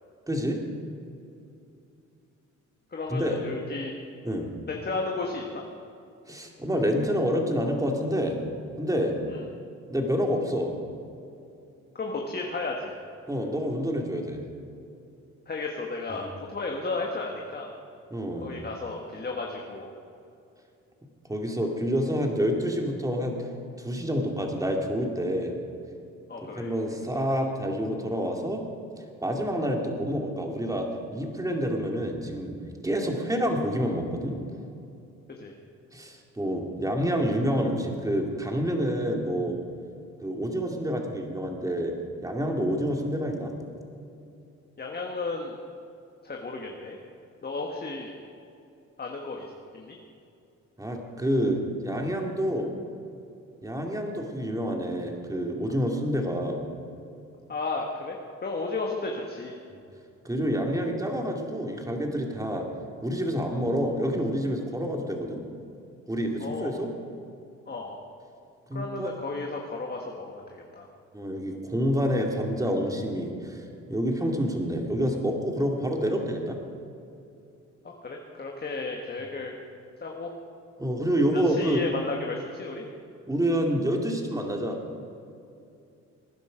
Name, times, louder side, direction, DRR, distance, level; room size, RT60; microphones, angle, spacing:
voice 1, 0.3-0.6 3.1-3.4 4.2-4.5 6.3-8.4 8.8-9.2 9.9-10.7 13.3-14.4 16.1-16.3 18.1-18.5 21.3-23.5 23.8-25.5 26.4-28.6 29.2-30.9 31.1-32.6 32.8-34.4 35.9-39.6 40.2-41.9 42.2-43.5 50.8-52.7 53.6-56.6 60.2-62.7 63.0-65.4 66.1-66.9 68.7-69.1 71.1-73.6 73.9-76.6 80.8-81.8 83.3-84.8, equal, 10° right, 2 dB, 2.4 m, -28 dB
voice 2, 2.9-3.9 4.7-5.6 9.3-9.4 11.9-12.9 15.5-17.7 18.4-19.9 26.3-26.7 35.4-35.5 44.8-45.5 46.2-47.0 47.4-48.1 49.0-49.5 49.7-50.0 57.5-59.5 66.4-66.7 67.7-68.0 68.7-70.9 77.8-79.5 80.0-80.3 81.5-82.8, left 3 dB, 30° left, 1 dB, 1.6 m, -33 dB
19.5 x 10.5 x 5.2 m, 2.6 s
cardioid pair, 90°, 30 cm